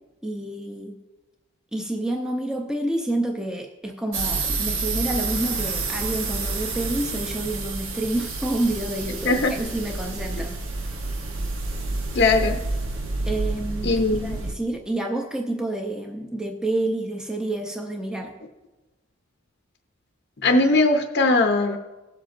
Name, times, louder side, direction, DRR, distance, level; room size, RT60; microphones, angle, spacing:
voice 1, 0.2-1.0 1.7-10.6 13.3-18.4, right 1 dB, 5° right, 2 dB, 0.6 m, -28 dB
sound 1, 4.1-14.5, right 3 dB, 65° right, 0.9 m, -29 dB
voice 2, 12.1-12.6 13.8-14.4 20.4-21.8, left 3 dB, 50° left, 3 dB, 0.6 m, -19 dB
19.0 x 7.7 x 2.5 m, 1.1 s
head